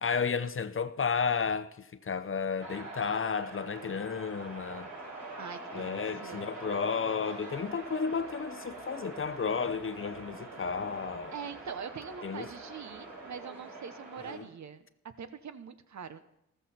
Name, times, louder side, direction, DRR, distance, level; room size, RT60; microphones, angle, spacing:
voice 1, 0.0-4.9 5.7-11.3 12.2-12.5 14.2-14.4, left 6 dB, 40° left, 0.7 m, -32 dB
sound 1, 2.6-14.4, right 2 dB, 80° right, 6.2 m, -44 dB
voice 2, 5.4-6.4 11.3-16.2, right 6 dB, 60° right, 1.0 m, -43 dB
14.0 x 13.5 x 4.3 m
cardioid pair, 70°, 32 cm